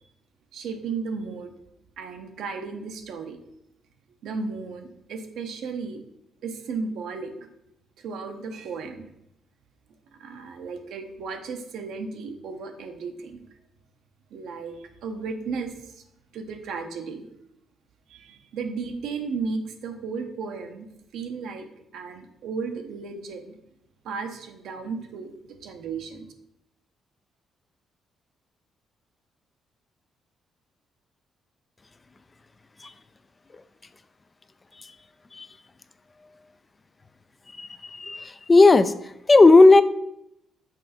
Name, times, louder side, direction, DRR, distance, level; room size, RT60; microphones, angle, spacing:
voice 1, 0.5-1.5 2.0-3.4 4.2-6.0 6.4-7.5 8.0-9.1 10.2-13.4 14.3-16.0 16.3-17.3 18.1-20.9 21.1-21.7 21.9-23.5 24.0-26.3, right 4 dB, 80° right, 6 dB, 0.9 m, -34 dB
voice 2, 37.6-38.9 39.3-39.8, left 3 dB, 25° left, 12 dB, 0.4 m, -15 dB
6.3 x 5.2 x 4.2 m, 0.80 s
cardioid pair, 90°, 0 cm